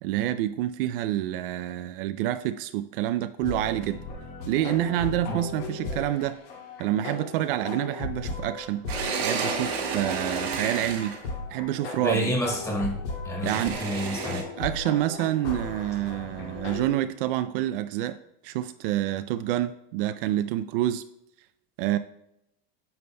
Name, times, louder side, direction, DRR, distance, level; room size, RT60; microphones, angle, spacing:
voice 1, 0.0-4.0 4.5-6.4 6.8-8.9 9.2-11.2 11.5-12.2 13.4-13.8 14.6-18.2 18.4-21.0 21.8-22.0, right 13 dB, 65° right, 11 dB, 0.4 m, -28 dB
sound 1, 3.4-16.9, left 3 dB, 65° left, 2.3 m, -37 dB
sound 2, 8.9-11.3 13.4-14.4, right 5 dB, 85° right, 1.9 m, -30 dB
voice 2, 12.0-13.0 13.2-13.5 13.8-14.4, equal, 10° left, -2 dB, 1.5 m, -28 dB
9.5 x 6.9 x 2.2 m, 0.79 s
supercardioid pair, 160°, 30 cm